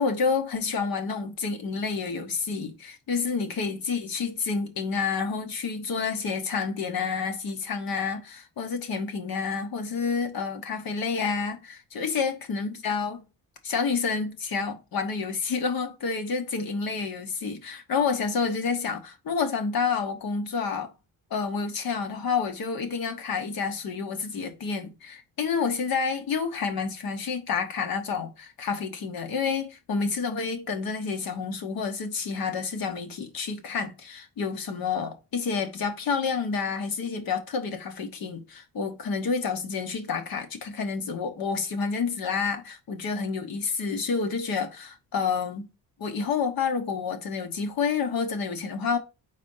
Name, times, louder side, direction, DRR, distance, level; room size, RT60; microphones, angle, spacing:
voice 1, 0.0-13.2 13.6-20.9 21.3-45.7 46.0-49.0, left 5 dB, 75° left, 1.3 m, -29 dB
4.3 x 4.2 x 5.4 m
cardioid pair, 95°, 36 cm